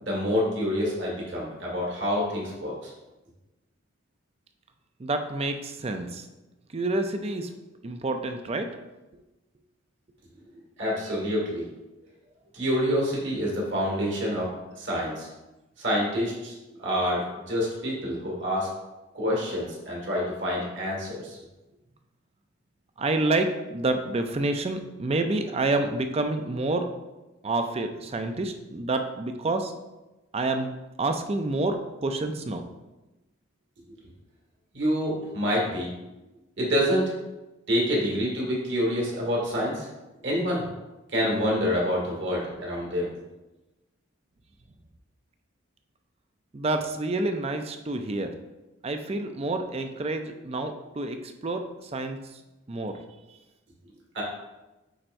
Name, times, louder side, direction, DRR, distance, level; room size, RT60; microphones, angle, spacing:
voice 1, 0.0-2.9 10.8-11.7 12.5-14.5 14.8-15.3 15.8-16.5 16.8-18.7 19.1-21.4 34.7-35.9 36.6-37.1 37.7-39.9 40.2-40.6 41.1-43.1 54.1-54.2, equal, 60° right, -3 dB, 1.9 m, -27 dB
voice 2, 5.0-6.2 6.7-7.5 7.8-8.8 23.0-26.9 27.4-29.7 30.3-30.7 31.0-32.6 46.5-48.3 48.8-52.2 52.7-53.0, right 2 dB, 30° right, 6 dB, 0.4 m, -28 dB
8.8 x 4.4 x 2.6 m, 1.1 s
head